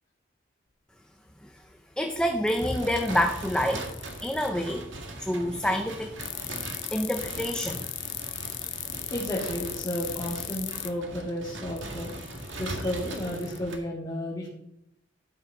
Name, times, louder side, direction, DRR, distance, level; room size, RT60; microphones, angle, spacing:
voice 1, 2.0-3.9 4.2-4.9 5.2-6.2 6.9-7.9, equal, 5° left, 4 dB, 0.7 m, -27 dB
sound 1, 2.5-4.5 6.2-10.9 11.8-13.6, left 14 dB, 80° left, 0.8 m, -37 dB
sound 2, 2.6-13.8, right 2 dB, 90° right, 1.8 m, -40 dB
voice 2, 9.1-12.1 12.6-14.5, equal, 20° left, -7 dB, 2.2 m, -32 dB
12.5 x 6.5 x 5.0 m, 0.80 s
head